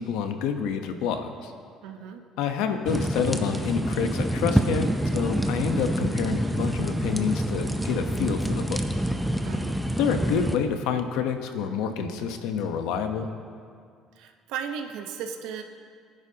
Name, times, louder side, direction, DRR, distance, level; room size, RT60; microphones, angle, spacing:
voice 1, 0.0-1.5 2.4-8.8 10.0-13.3, left 7 dB, 90° left, 6 dB, 1.0 m, -28 dB
voice 2, 1.8-2.2 9.4-9.8 14.1-15.6, right 7 dB, 85° right, 5 dB, 1.1 m, -35 dB
sound 1, 2.9-10.6, right 1 dB, 5° right, 0.7 m, -27 dB
23.0 x 10.5 x 2.9 m, 2.2 s
cardioid pair, 130°, 0 cm